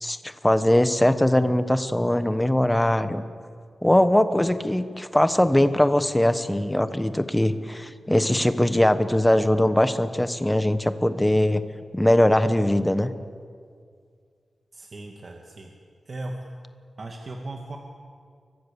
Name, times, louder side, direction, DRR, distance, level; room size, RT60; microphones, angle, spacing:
voice 1, 0.0-3.2 3.8-11.6 11.9-13.1, left 1 dB, 10° left, 11 dB, 1.2 m, -21 dB
voice 2, 14.7-15.7 16.1-16.4 17.0-17.8, right 2 dB, 40° right, 1 dB, 2.2 m, -37 dB
30.0 x 24.0 x 7.1 m, 2.1 s
wide cardioid pair, 150°, 0 cm